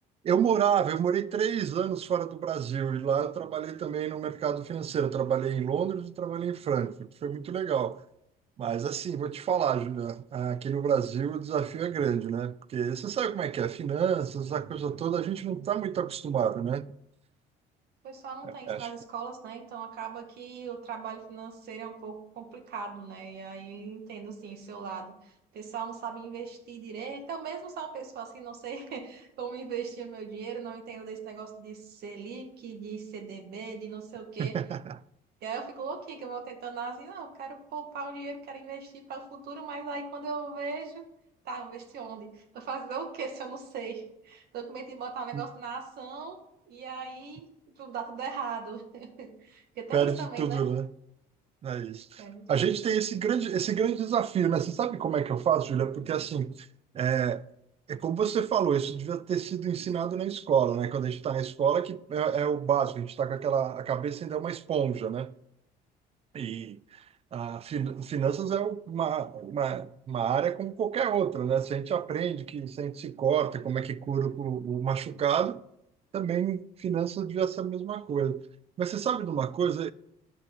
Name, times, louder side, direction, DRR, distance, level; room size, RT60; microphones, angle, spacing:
voice 1, 0.2-8.0 8.6-16.9 18.4-18.9 34.4-35.0 45.3-45.4 49.9-50.9 51.6-56.7 56.9-57.5 57.9-65.3 66.3-67.0 67.3-75.6 76.1-78.4 78.8-79.9, right 8 dB, 35° right, 0.4 m, -29 dB
voice 2, 18.0-34.6 35.4-41.0 41.5-46.4 46.7-47.4 47.8-50.6 52.2-52.7, right 5 dB, 70° right, 1.7 m, -39 dB
10.5 x 6.0 x 3.7 m
cardioid pair, 110°, 17 cm